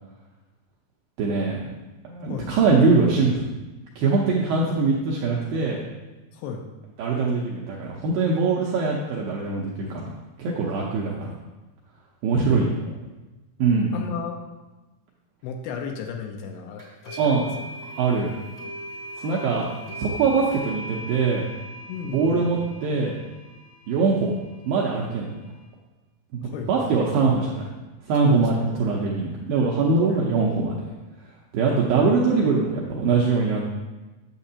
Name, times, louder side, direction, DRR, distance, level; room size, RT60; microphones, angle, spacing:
voice 1, 1.2-1.6 2.0-3.4 4.0-5.8 7.0-10.1 10.4-11.3 12.2-12.7 13.6-13.9 17.2-17.4 18.0-18.3 19.2-19.7 19.9-21.4 22.1-23.2 23.9-24.4 24.6-25.3 26.3-27.6 28.1-30.9 31.5-33.8, right 4 dB, 85° right, -3 dB, 2.1 m, -22 dB
voice 2, 6.3-6.7 12.4-12.7 13.9-14.4 15.4-17.7 21.9-22.6 26.4-27.1 28.2-28.8 29.1-29.3 30.1-30.5 31.7-32.1, left 5 dB, 80° left, 3 dB, 2.6 m, -34 dB
sound 1, 16.8-25.6, equal, 20° right, 0.4 m, -40 dB
8.8 x 7.4 x 2.8 m, 1.2 s
omnidirectional pair, 5.0 m